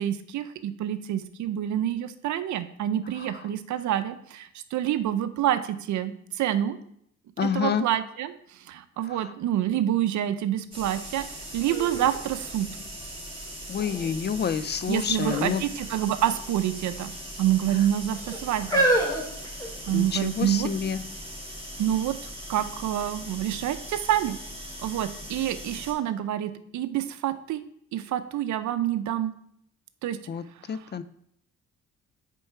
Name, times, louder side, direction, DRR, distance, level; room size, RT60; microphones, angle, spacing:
voice 1, 0.0-6.8 7.4-12.7 14.9-17.1 17.4-18.9 19.9-20.7 21.8-22.1 22.5-24.4 24.8-27.6 27.9-29.3 30.0-30.2, right 11 dB, 70° right, 12 dB, 0.6 m, -27 dB
voice 2, 7.4-7.9 9.1-9.2 13.7-15.6 19.9-21.0 30.3-31.0, left 7 dB, 35° left, 14 dB, 0.4 m, -28 dB
sound 1, 10.7-25.9, equal, 15° right, 2.2 m, -40 dB
sound 2, 11.1-11.2 11.7-13.2 13.8-14.3 15.1-15.5 15.8-15.9 16.8-17.4 18.1-20.2 20.9-21.0, right 1 dB, 10° left, 2.2 m, -28 dB
6.9 x 4.6 x 4.5 m, 0.71 s
cardioid pair, 90°, 30 cm